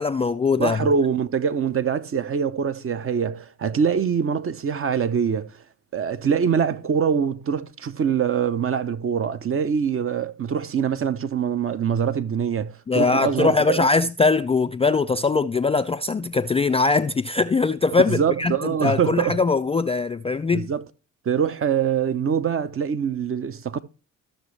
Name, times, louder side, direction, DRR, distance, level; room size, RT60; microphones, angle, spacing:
voice 1, 0.0-0.9 12.9-20.7, left 4 dB, 15° left, 0.3 m, -21 dB
voice 2, 0.6-5.5 5.9-13.9 18.1-19.4 20.5-20.8 21.3-23.8, right 7 dB, 35° right, 0.7 m, -24 dB
13.5 x 6.2 x 3.2 m
hypercardioid pair, 50°, 38 cm